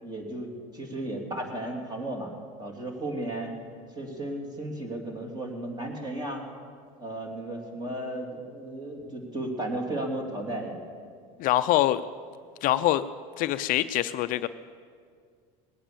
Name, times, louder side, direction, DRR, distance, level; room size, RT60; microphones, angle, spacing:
voice 1, 0.0-2.3 2.6-3.5 3.9-6.4 7.0-10.8, right 1 dB, 25° right, 2 dB, 3.0 m, -34 dB
voice 2, 11.4-12.0 12.6-13.0 13.4-14.5, left 14 dB, 55° left, 12 dB, 0.5 m, -24 dB
20.0 x 8.9 x 6.9 m, 2.1 s
supercardioid pair, 110°, 17 cm